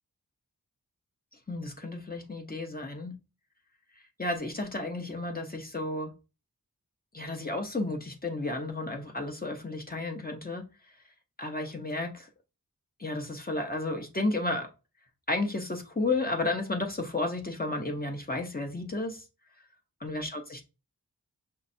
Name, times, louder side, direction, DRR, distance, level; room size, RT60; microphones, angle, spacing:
voice 1, 1.5-3.1 4.2-6.1 7.1-10.6 11.4-12.3 13.0-14.7 15.3-19.2 20.0-20.6, left 2 dB, 25° left, 1.0 m, -32 dB
5.7 x 3.2 x 2.7 m
wide cardioid pair, 70°, 33 cm